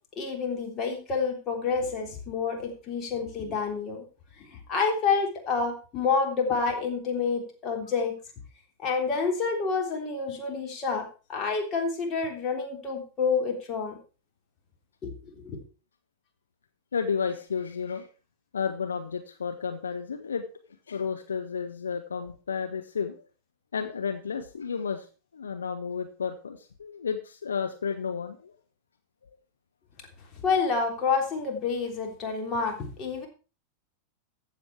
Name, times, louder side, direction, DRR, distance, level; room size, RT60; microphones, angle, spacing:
voice 1, 0.1-4.0 4.4-8.1 8.8-14.0 15.0-15.6 30.4-33.3, left 5 dB, 30° left, 2 dB, 3.5 m, -28 dB
voice 2, 16.9-18.1 18.5-20.4 20.9-23.1 23.7-25.1 25.3-28.5, left 6 dB, 70° left, 6 dB, 1.0 m, -32 dB
14.5 x 7.3 x 4.7 m, 0.34 s
figure-of-eight pair, 90°, 0 cm